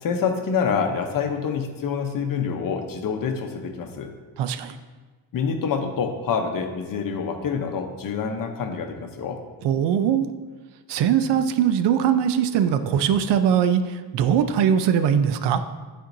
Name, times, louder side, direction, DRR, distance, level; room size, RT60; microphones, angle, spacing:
voice 1, 0.0-4.1 5.3-9.4, left 6 dB, 55° left, 5 dB, 0.8 m, -26 dB
voice 2, 4.4-4.8 9.6-10.3 10.9-15.6, right 8 dB, 80° right, 10 dB, 0.5 m, -21 dB
10.0 x 4.4 x 2.6 m, 1.3 s
cardioid pair, 135°, 41 cm